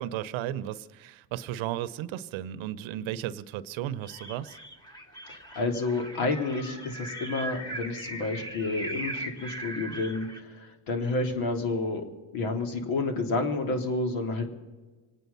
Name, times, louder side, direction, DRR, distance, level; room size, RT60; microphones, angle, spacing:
voice 1, 0.0-4.6, right 12 dB, 70° right, 14 dB, 0.9 m, -34 dB
sound 1, 4.0-10.4, right 1 dB, 10° left, 2.1 m, -39 dB
voice 2, 5.3-12.1 12.3-14.5, left 3 dB, 70° left, 4 dB, 3.4 m, -30 dB
26.5 x 9.3 x 5.6 m, 1.2 s
cardioid pair, 110°, 49 cm